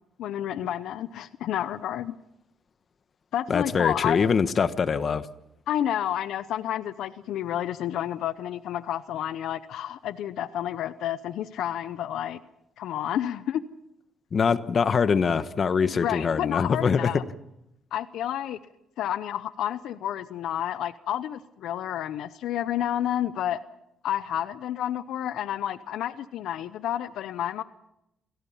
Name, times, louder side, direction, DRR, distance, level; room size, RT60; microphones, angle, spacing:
voice 1, 0.2-2.1 3.3-4.3 5.7-12.4 12.8-13.6 15.9-17.2 17.9-18.6 19.0-23.6 24.0-27.6, left 11 dB, 80° left, 14 dB, 0.8 m, -30 dB
voice 2, 3.5-5.3 14.3-17.2, left 6 dB, 45° left, 12 dB, 1.2 m, -23 dB
28.0 x 18.0 x 5.7 m, 0.82 s
cardioid pair, 90°, 0 cm